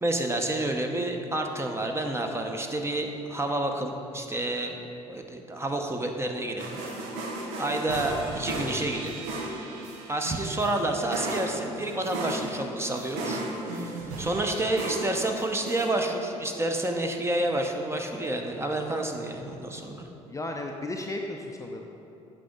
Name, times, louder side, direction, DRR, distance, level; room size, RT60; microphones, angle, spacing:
voice 1, 0.0-4.8 5.1-6.8 7.6-9.1 10.1-20.1, right 1 dB, 15° right, 3 dB, 0.9 m, -29 dB
sound 1, 6.6-15.9, right 2 dB, 70° right, 1.0 m, -35 dB
voice 2, 20.3-21.8, left 2 dB, 20° left, 2 dB, 0.6 m, -34 dB
8.4 x 6.0 x 3.9 m, 2.8 s
hypercardioid pair, 55°, 18 cm